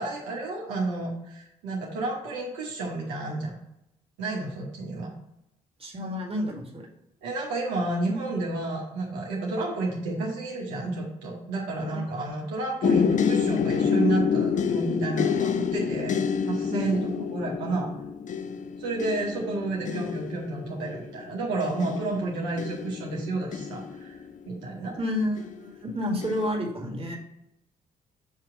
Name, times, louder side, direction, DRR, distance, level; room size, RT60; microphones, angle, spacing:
voice 1, 0.0-3.6 4.2-5.1 7.2-16.2 16.5-17.9 18.8-25.0, right 2 dB, 80° right, -2 dB, 1.1 m, -31 dB
voice 2, 5.8-6.9 11.9-12.1 16.7-17.2 25.0-27.2, left 1 dB, 30° right, -1 dB, 1.7 m, -30 dB
sound 1, 12.8-24.7 25.4-25.8 26.2-26.5, left 6 dB, 45° left, 0.5 m, -28 dB
6.8 x 2.9 x 4.8 m, 0.82 s
hypercardioid pair, 45°, 19 cm